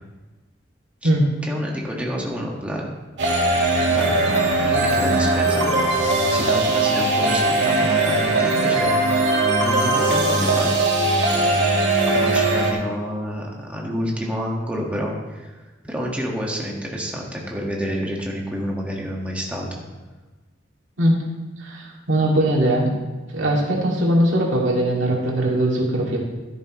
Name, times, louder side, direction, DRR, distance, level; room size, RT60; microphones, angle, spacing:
voice 1, 1.5-2.9 3.8-8.9 9.1-10.7 11.3-11.5 11.9-15.5 15.8-19.8, equal, 5° right, -2 dB, 1.7 m, -29 dB
sound 1, 3.2-12.7, right 2 dB, 70° right, 1.9 m, -20 dB
voice 2, 21.6-22.9 23.3-26.2, right 1 dB, 90° right, -3 dB, 2.5 m, -20 dB
12.5 x 10.5 x 3.2 m, 1.2 s
head